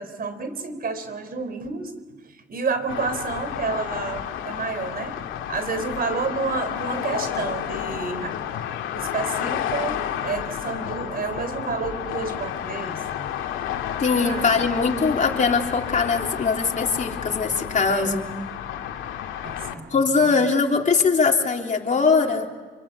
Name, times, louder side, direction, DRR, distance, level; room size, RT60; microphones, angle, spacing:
voice 1, 0.0-1.9 2.2-5.2 5.5-8.3 8.9-13.0 14.2-14.6 17.9-18.1 19.4-20.0 20.2-20.5, right 4 dB, 50° right, 10 dB, 4.1 m, -30 dB
sound 1, 2.9-19.8, left 10 dB, 90° left, 2.2 m, -31 dB
voice 2, 14.0-18.3 19.9-22.6, left 4 dB, 40° left, 1 dB, 3.7 m, -21 dB
28.0 x 24.5 x 8.5 m, 1.3 s
cardioid pair, 90°, 20 cm